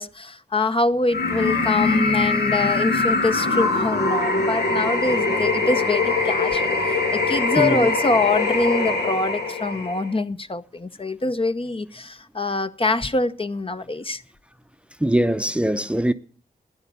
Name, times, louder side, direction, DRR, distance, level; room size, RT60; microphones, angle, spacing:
voice 1, 0.0-14.2, left 3 dB, 35° left, 0.9 m, -24 dB
sound 1, 1.1-10.1, left 3 dB, 80° left, 2.1 m, -22 dB
voice 2, 7.6-7.9 15.0-16.1, right 1 dB, 5° right, 0.7 m, -21 dB
13.5 x 10.5 x 7.0 m
cardioid pair, 50°, 17 cm